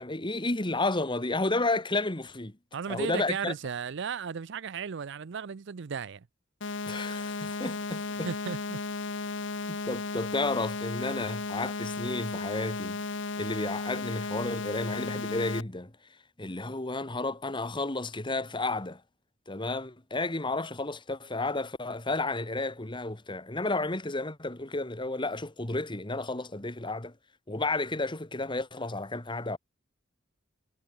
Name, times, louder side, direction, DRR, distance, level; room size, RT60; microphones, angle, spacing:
voice 1, 0.0-2.6 2.9-3.5 6.9-8.3 9.7-13.0 13.4-15.9 16.4-19.0 19.5-27.1 27.5-29.6, left 2 dB, 25° left, 1.8 m, -32 dB
voice 2, 2.7-6.2 8.2-8.8, right 6 dB, 65° right, 0.5 m, -35 dB
sound 1, 6.6-15.6, left 3 dB, 65° left, 1.3 m, -35 dB
head